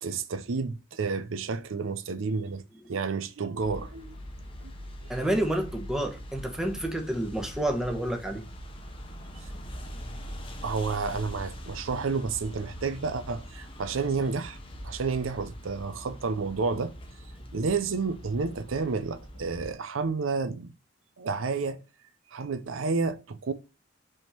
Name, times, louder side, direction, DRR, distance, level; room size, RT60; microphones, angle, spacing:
voice 1, 0.0-2.6 2.9-4.2 4.6-4.7 5.0-5.1 10.6-14.6 14.8-16.9 17.5-20.7 21.2-21.8 22.3-23.5, right 4 dB, 75° right, 0.6 m, -30 dB
sound 1, 3.6-19.7, equal, 25° left, 0.9 m, -42 dB
voice 2, 5.1-8.4, right 1 dB, 5° right, 1.0 m, -29 dB
5.4 x 3.6 x 5.7 m
head